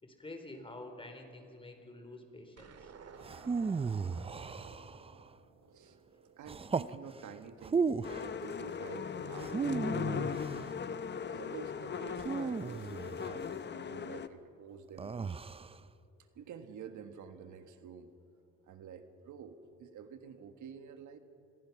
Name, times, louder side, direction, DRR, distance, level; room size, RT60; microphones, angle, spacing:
voice 1, 0.0-2.9, left 2 dB, 20° left, 5 dB, 4.0 m, -48 dB
sound 1, 2.6-7.0, right 5 dB, 55° right, 2.1 m, -55 dB
sound 2, 3.2-5.2 6.5-7.0 7.6-8.3 9.4-10.7 12.2-13.4 15.0-15.8, right 5 dB, 20° right, 0.5 m, -35 dB
voice 2, 6.4-10.7 11.1-15.4 16.3-18.1 18.7-21.2, right 7 dB, 75° right, 8 dB, 1.6 m, -49 dB
sound 3, 8.0-14.3, left 7 dB, 35° left, 0.9 m, -38 dB
28.0 x 22.5 x 6.0 m, 2.8 s
cardioid pair, 90°, 30 cm